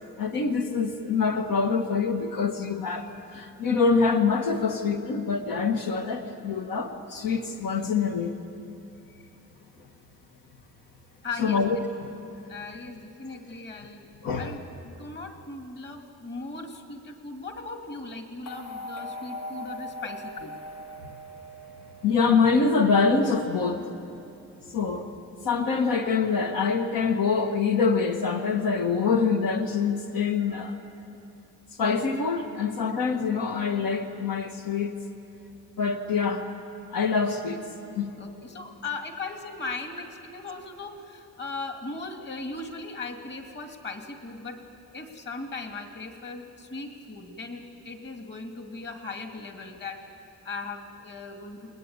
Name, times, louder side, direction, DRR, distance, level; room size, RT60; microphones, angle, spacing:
voice 1, 0.2-8.4 11.4-11.8 14.2-14.6 22.0-23.8 24.7-25.1 25.4-30.8 31.8-34.9 35.8-36.5 36.9-37.6 38.0-38.1, left 5 dB, 75° left, 4 dB, 1.7 m, -25 dB
voice 2, 11.2-11.9 12.5-20.5 38.2-44.6 44.9-51.8, left 3 dB, 30° left, 4 dB, 2.4 m, -38 dB
sound 1, 18.5-22.7, left 1 dB, 50° left, 3.1 m, -40 dB
29.0 x 21.5 x 9.7 m, 2.7 s
wide cardioid pair, 170°, 34 cm